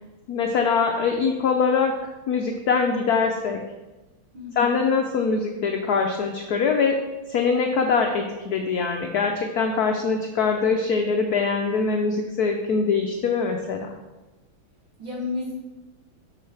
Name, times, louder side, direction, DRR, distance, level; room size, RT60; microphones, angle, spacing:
voice 1, 0.3-2.0 2.3-3.6 4.6-7.0 7.3-13.9, left 5 dB, 85° left, 3 dB, 0.8 m, -23 dB
voice 2, 4.3-4.8 15.0-15.5, left 3 dB, 75° right, -5 dB, 2.9 m, -31 dB
6.8 x 6.3 x 3.3 m, 1.1 s
omnidirectional pair, 2.3 m